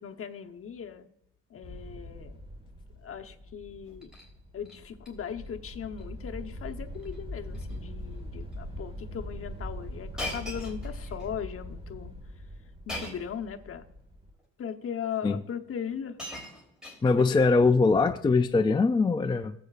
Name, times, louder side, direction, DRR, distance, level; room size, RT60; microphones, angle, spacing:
voice 1, 0.0-1.0 1.5-2.4 3.0-4.1 4.5-12.1 12.9-13.8 14.6-16.2 17.1-17.4, left 8 dB, 45° left, 5 dB, 1.0 m, -38 dB
sound 1, 1.6-14.3, equal, 20° right, 1.7 m, -42 dB
Shatter, 3.8-4.3 4.6-5.1 5.4-5.7 6.0-6.1 6.9-7.2 7.5-7.8 8.5-8.6 10.2-11.3 12.9-13.4 14.4-14.5 15.5-15.6 15.9-17.4 18.3-18.6, left 1 dB, ahead, 3.5 m, -40 dB
voice 2, 17.0-19.5, left 4 dB, 15° left, 8 dB, 0.3 m, -22 dB
17.0 x 7.8 x 2.5 m, 0.79 s
cardioid pair, 90°, 30 cm